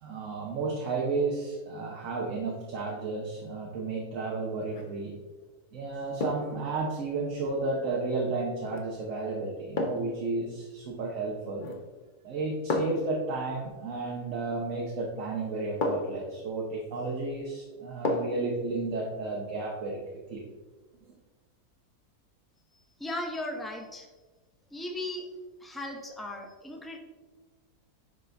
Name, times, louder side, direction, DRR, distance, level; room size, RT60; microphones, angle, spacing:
voice 1, 0.0-5.1 5.7-11.7 12.2-20.0 20.3-20.4, right 3 dB, 60° right, -2 dB, 1.2 m, -32 dB
sound 1, 4.6-5.0 6.2-6.6 8.7-8.9 9.8-10.2 11.6-11.9 12.7-13.1 14.8-14.9 15.8-16.3 18.0-18.5 18.9-19.0, left 2 dB, 45° left, 0.8 m, -32 dB
voice 2, 22.7-24.1 24.7-25.3 25.6-27.0, left 1 dB, ahead, 2 dB, 0.4 m, -37 dB
10.5 x 4.0 x 3.4 m, 1.2 s
omnidirectional pair, 1.6 m